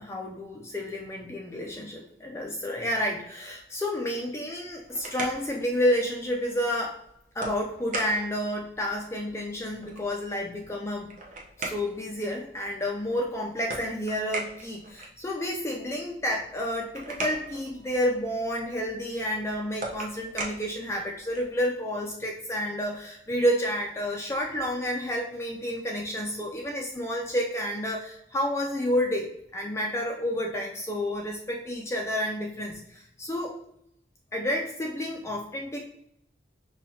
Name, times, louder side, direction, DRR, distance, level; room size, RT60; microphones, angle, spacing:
voice 1, 0.0-7.0 7.4-11.1 11.6-33.6 34.3-35.8, equal, 15° left, -1 dB, 0.3 m, -30 dB
sound 1, 4.5-21.6, right 2 dB, 40° right, 0.7 m, -41 dB
5.1 x 2.3 x 2.7 m, 0.76 s
head